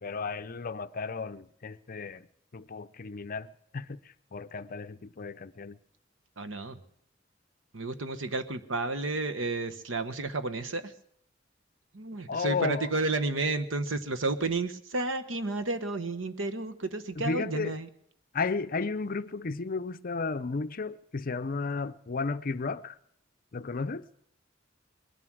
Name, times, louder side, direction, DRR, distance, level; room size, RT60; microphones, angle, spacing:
voice 1, 0.0-2.3 2.5-5.8 12.3-12.9 17.2-17.8 18.3-23.0 23.5-24.1, left 4 dB, 45° left, 0.6 m, -33 dB
voice 2, 6.4-6.8 7.7-10.9 11.9-17.9, right 3 dB, 85° right, 1.2 m, -31 dB
21.0 x 11.0 x 6.2 m
head